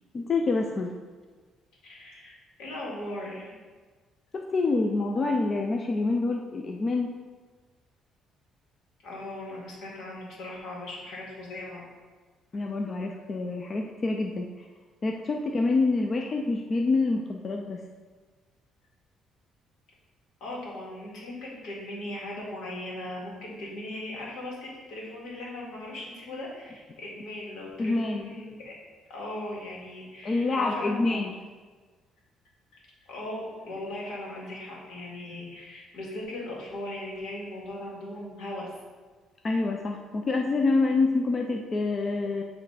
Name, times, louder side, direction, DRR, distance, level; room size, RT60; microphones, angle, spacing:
voice 1, 0.1-0.9 4.3-7.1 12.5-14.7 15.0-17.8 27.8-28.3 30.2-31.3 39.4-42.4, left 3 dB, 25° left, 2 dB, 0.4 m, -27 dB
voice 2, 1.8-2.3 2.6-3.5 9.0-11.8 20.4-28.7 29.1-31.2 33.1-38.7, left 1 dB, 70° left, -4 dB, 2.1 m, -38 dB
8.2 x 3.2 x 4.8 m, 1.4 s
cardioid pair, 160°, 0 cm